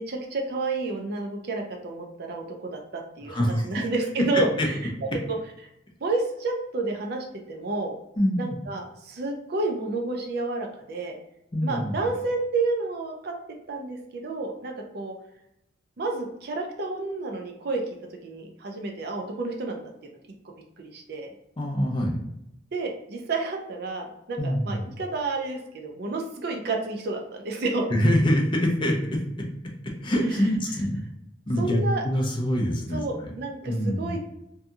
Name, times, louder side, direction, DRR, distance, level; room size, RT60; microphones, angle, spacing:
voice 1, 0.0-4.8 5.3-5.4 6.0-7.9 8.4-11.1 11.6-13.4 13.7-15.1 16.0-17.8 18.1-19.8 20.8-21.3 22.7-27.9 31.6-32.0 32.9-34.2, right 3 dB, 60° right, 2 dB, 0.5 m, -30 dB
voice 2, 3.3-3.9 4.3-4.7 8.2-8.4 11.5-12.0 21.6-22.2 24.4-24.8 27.9-29.5 29.8-31.0 31.5-33.3 33.6-34.2, equal, 25° left, 0 dB, 0.5 m, -25 dB
2.7 x 2.6 x 2.3 m, 0.83 s
head